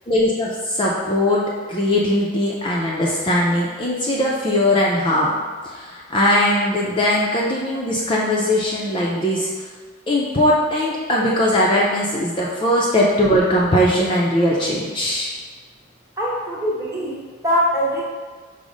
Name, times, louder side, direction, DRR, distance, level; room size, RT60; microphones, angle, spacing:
voice 1, 0.1-1.4 1.7-5.3 5.6-9.7 10.1-15.3, left 1 dB, 25° left, -5 dB, 0.4 m, -20 dB
voice 2, 16.2-18.0, equal, 15° right, -5 dB, 0.9 m, -22 dB
5.2 x 2.0 x 4.8 m, 1.5 s
head